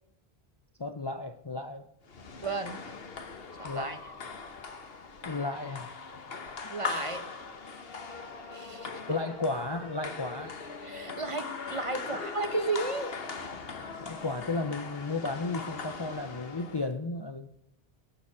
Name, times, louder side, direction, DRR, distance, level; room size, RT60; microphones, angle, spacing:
voice 1, 0.8-1.9 3.6-4.0 5.2-6.0 9.1-10.6 12.1-12.2 14.0-17.5, left 3 dB, 30° left, 7 dB, 0.6 m, -34 dB
sound 1, 2.1-16.9, left 5 dB, 70° left, 1.4 m, -40 dB
voice 2, 2.4-2.8 3.6-4.0 6.7-7.2 8.5-9.2 10.8-13.1, right 3 dB, 35° right, 9 dB, 1.0 m, -34 dB
18.0 x 7.1 x 6.0 m, 0.77 s
omnidirectional pair, 1.0 m